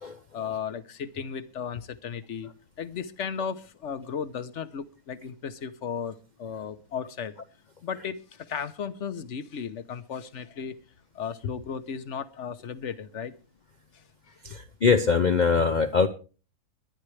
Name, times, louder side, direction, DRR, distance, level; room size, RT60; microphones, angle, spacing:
voice 1, 0.3-2.5 2.8-7.3 7.8-10.8 11.1-13.3 14.5-14.6, left 7 dB, 55° left, 1.2 m, -35 dB
voice 2, 14.4-16.1, left 5 dB, 40° left, 0.7 m, -22 dB
22.5 x 10.0 x 3.3 m
omnidirectional pair, 1.5 m